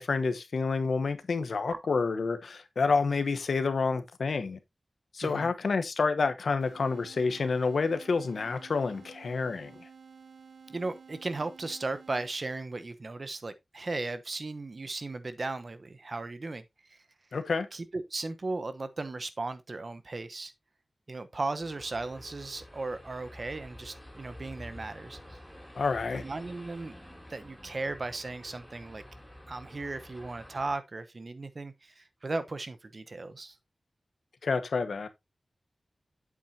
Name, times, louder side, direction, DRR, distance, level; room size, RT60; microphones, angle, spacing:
voice 1, 0.0-4.6 5.1-9.8 17.3-17.7 25.7-26.2 34.4-35.1, left 4 dB, 85° left, 1.0 m, -29 dB
voice 2, 5.2-5.5 10.7-17.0 17.7-20.5 21.1-25.4 26.1-26.9 27.3-29.0 29.5-33.6, right 3 dB, 50° right, 1.0 m, -36 dB
sound 1, 6.6-12.6, right 5 dB, 70° right, 1.2 m, -53 dB
sound 2, 21.6-30.8, left 1 dB, ahead, 3.6 m, -49 dB
8.3 x 7.4 x 2.8 m
wide cardioid pair, 85°, 0 cm